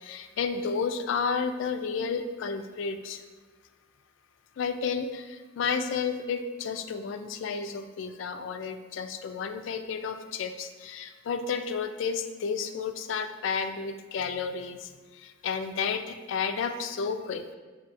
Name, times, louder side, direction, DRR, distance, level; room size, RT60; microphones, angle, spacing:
voice 1, 0.0-3.2 4.6-17.5, left 5 dB, 80° left, 8 dB, 0.3 m, -32 dB
6.6 x 2.7 x 2.5 m, 1.3 s
head